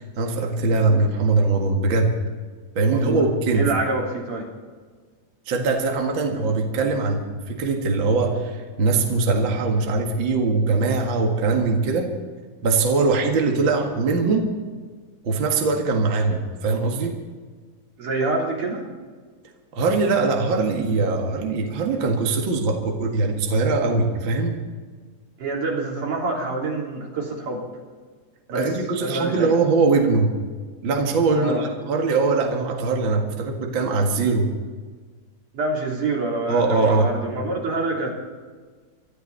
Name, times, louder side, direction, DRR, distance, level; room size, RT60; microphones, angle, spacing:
voice 1, 0.0-2.1 2.8-3.7 5.5-12.1 12.6-14.5 15.2-17.2 19.8-24.6 28.5-30.3 30.8-34.5 36.5-37.1, right 3 dB, 45° right, 1 dB, 2.2 m, -21 dB
voice 2, 2.9-3.2 3.5-4.5 18.0-18.9 25.4-27.6 28.5-28.7 29.0-29.5 31.4-31.6 35.5-38.1, right 2 dB, 75° right, -2 dB, 5.0 m, -26 dB
26.0 x 13.0 x 4.1 m, 1.5 s
omnidirectional pair, 3.6 m